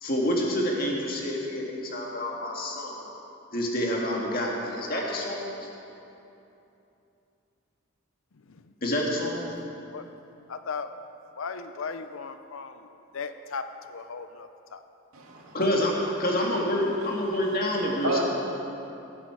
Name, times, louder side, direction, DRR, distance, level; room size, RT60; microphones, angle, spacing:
voice 1, 0.0-3.1 3.5-5.5 8.8-9.4 15.5-18.2, left 1 dB, 45° left, -2 dB, 1.9 m, -27 dB
voice 2, 10.5-10.9 11.4-12.9 13.1-13.6 13.9-14.8, left 5 dB, 70° left, 9 dB, 0.6 m, -36 dB
voice 3, 15.1-15.6 16.4-16.5 17.3-17.4 18.0-18.2, right 2 dB, 80° right, -2 dB, 2.2 m, -31 dB
17.5 x 9.7 x 4.7 m, 2.8 s
head